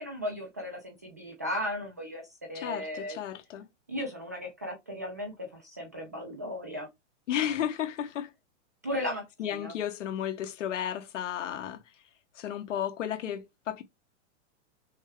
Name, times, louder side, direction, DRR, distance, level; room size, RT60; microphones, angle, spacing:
voice 1, 0.0-2.2 2.5-3.2 3.9-6.9 8.8-9.8, left 1 dB, 15° right, 0.3 m, -36 dB
voice 2, 2.5-3.7 7.3-8.3 9.4-11.8 12.3-13.8, left 10 dB, 85° left, 1.2 m, -33 dB
6.3 x 2.2 x 3.4 m
supercardioid pair, 175°, 36 cm